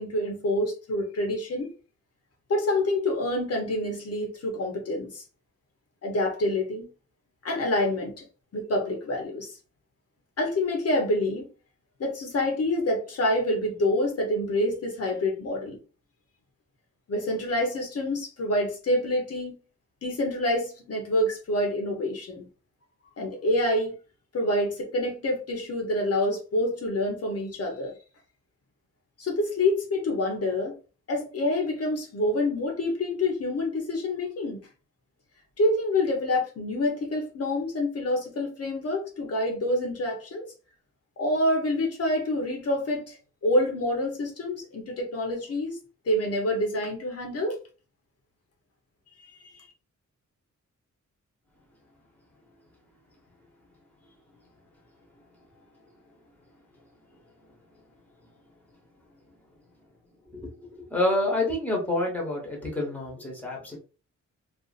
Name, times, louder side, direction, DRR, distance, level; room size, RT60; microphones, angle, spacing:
voice 1, 0.0-1.7 2.5-5.2 6.0-6.9 7.4-8.2 8.5-9.5 10.4-11.4 12.0-15.8 17.1-19.5 20.0-22.5 23.2-23.9 24.3-28.0 29.2-30.8 31.1-34.6 35.6-40.5 41.2-45.8 46.1-47.6 49.2-49.7, left 1 dB, 50° left, 2 dB, 0.7 m, -27 dB
voice 2, 60.3-63.8, left 2 dB, 5° left, -1 dB, 0.8 m, -28 dB
2.5 x 2.4 x 2.3 m, 0.35 s
wide cardioid pair, 165°, 31 cm